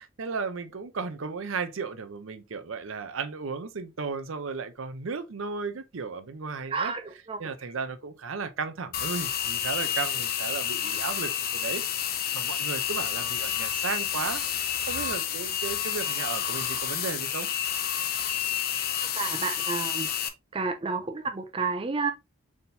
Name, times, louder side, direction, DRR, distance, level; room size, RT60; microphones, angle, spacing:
voice 1, 0.0-6.9 7.4-11.8 12.1-14.4 14.9-17.5, right 5 dB, 75° right, 0.6 m, -35 dB
voice 2, 6.7-7.7 19.0-20.1 20.5-22.1, right 4 dB, 25° right, 0.4 m, -31 dB
sound 1, 8.9-20.3, left 9 dB, 45° left, 0.5 m, -30 dB
4.3 x 3.6 x 2.6 m
head